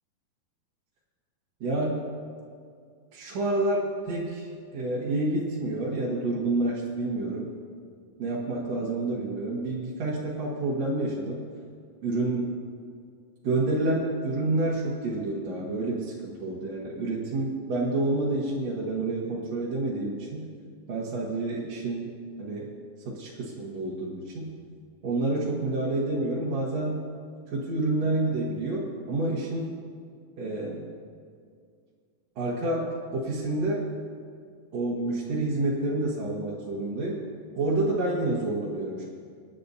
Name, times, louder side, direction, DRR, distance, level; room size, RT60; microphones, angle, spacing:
voice 1, 1.6-2.0 3.1-7.5 8.2-11.4 12.0-12.5 13.4-20.5 20.9-22.1 22.4-22.7 23.1-24.5 25.0-27.1 27.5-29.7 30.4-30.8 32.4-33.9 34.7-37.2 37.6-39.0, right 2 dB, 55° right, -5 dB, 2.1 m, -28 dB
26.5 x 10.0 x 2.7 m, 2.2 s
omnidirectional pair, 4.4 m